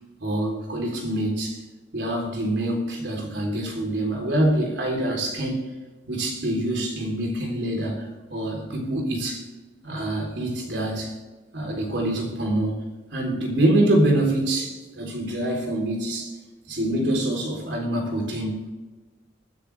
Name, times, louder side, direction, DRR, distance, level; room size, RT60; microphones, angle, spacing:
voice 1, 0.2-1.6 1.9-5.6 6.1-9.5 9.8-11.2 11.5-12.8 13.1-16.4 16.7-18.6, right 1 dB, 70° right, 1 dB, 3.8 m, -25 dB
22.5 x 10.0 x 3.5 m, 1.3 s
head